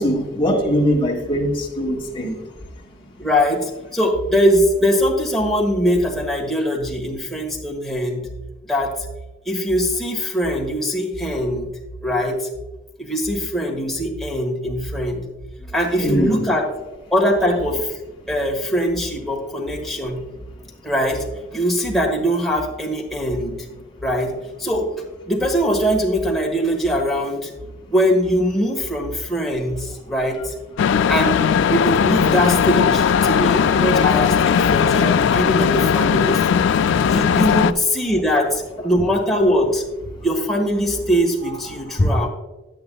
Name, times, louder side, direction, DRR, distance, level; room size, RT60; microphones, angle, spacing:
voice 1, 0.0-2.4 16.0-16.4 33.3-33.4 33.6-33.7 41.9-42.3, equal, 25° left, 1.3 m, -21 dB
voice 2, 3.2-8.3 8.6-8.9 9.4-11.7 12.0-12.5 13.0-15.3 15.6-16.7 17.1-17.9 18.3-20.2 20.8-21.3 21.5-23.6 24.0-24.3 24.6-24.9 25.3-27.5 27.9-30.5 31.1-31.4 31.7-36.5 37.0-39.8 40.2-42.3, equal, ahead, 1.4 m, -21 dB
sound 1, 30.8-37.7, left 7 dB, 75° left, 0.3 m, -17 dB
9.7 x 8.6 x 2.3 m
head